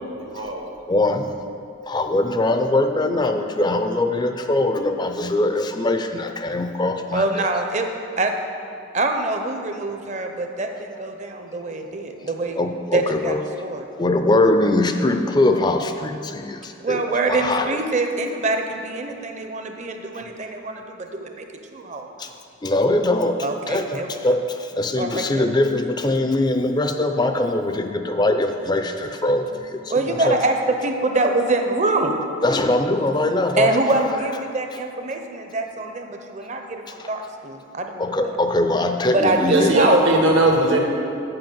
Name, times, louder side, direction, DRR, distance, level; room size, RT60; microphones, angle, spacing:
voice 1, 0.1-0.6 39.4-40.8, right 2 dB, 70° right, 1 dB, 1.3 m, -19 dB
voice 2, 0.9-1.3 1.9-7.4 12.6-13.4 14.0-17.7 22.2-22.3 22.6-30.4 32.4-33.8 37.0-37.1 38.0-39.8, left 2 dB, 20° left, 6 dB, 0.4 m, -22 dB
voice 3, 7.1-7.9 8.2-8.3 8.9-12.6 12.9-13.3 13.6-13.9 16.8-21.4 21.7-22.1 23.4-24.3 25.0-25.5 29.9-32.2 33.6-38.2 39.1-40.0, right 2 dB, 35° right, 4 dB, 0.7 m, -24 dB
7.8 x 5.7 x 7.4 m, 2.6 s
head